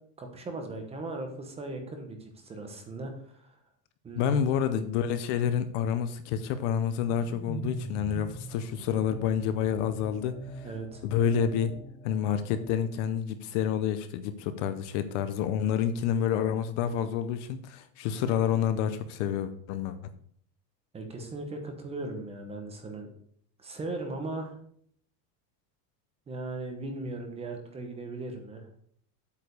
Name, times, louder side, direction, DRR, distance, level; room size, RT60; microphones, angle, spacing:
voice 1, 0.2-3.5 4.0-4.4 10.6-11.0 20.9-23.1 23.6-24.6 26.3-28.7, right 2 dB, 15° right, 4 dB, 0.9 m, -38 dB
voice 2, 4.2-10.7 11.0-11.7 12.0-20.0, left 8 dB, 50° left, 11 dB, 0.7 m, -28 dB
sound 1, 6.8-13.1, right 1 dB, 10° left, 0.4 m, -43 dB
8.3 x 4.9 x 6.7 m, 0.63 s
supercardioid pair, 170°, 48 cm